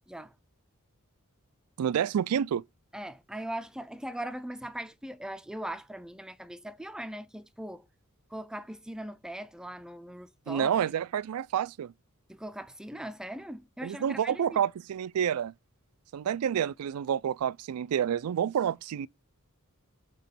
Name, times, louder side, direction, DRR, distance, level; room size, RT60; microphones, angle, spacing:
voice 1, 1.8-2.6 10.5-11.9 13.8-15.5 16.1-19.1, right 8 dB, 75° right, 0.3 m, -29 dB
voice 2, 2.9-7.9 8.3-10.9 12.3-14.6, right 1 dB, 5° right, 0.4 m, -40 dB
6.8 x 3.0 x 5.8 m
head